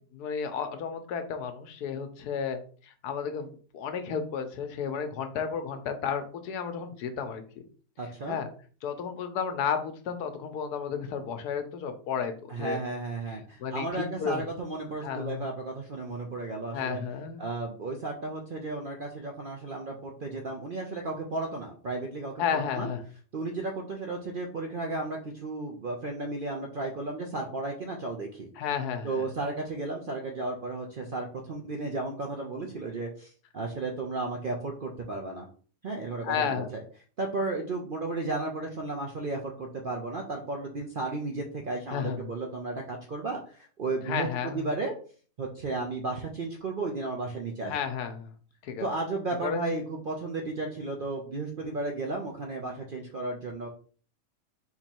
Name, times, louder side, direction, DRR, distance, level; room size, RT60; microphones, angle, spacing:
voice 1, 0.1-7.4 8.3-8.5 8.8-12.8 13.6-14.4 15.0-15.4 16.7-17.4 22.4-23.0 28.6-29.3 36.2-36.7 41.9-42.3 44.1-44.7 47.6-48.3 48.6-48.9 49.4-49.7, left 7 dB, 85° left, 8 dB, 1.3 m, -32 dB
voice 2, 8.0-8.4 12.5-17.0 17.4-22.9 23.3-28.5 29.0-35.5 35.8-36.8 37.2-44.3 44.5-44.9 45.4-47.7 48.8-53.7, right 2 dB, 55° right, 2 dB, 0.6 m, -34 dB
3.9 x 3.0 x 4.4 m, 0.42 s
omnidirectional pair, 1.6 m